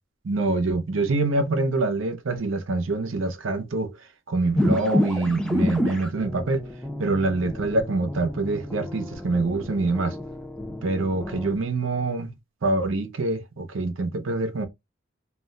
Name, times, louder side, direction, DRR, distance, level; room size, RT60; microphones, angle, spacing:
voice 1, 0.2-3.9 4.3-6.6 7.0-10.2 10.8-12.3 12.6-14.7, right 2 dB, 85° right, 0.6 m, -25 dB
sound 1, 4.6-11.5, left 1 dB, 5° left, 0.5 m, -29 dB
2.4 x 2.1 x 3.6 m
head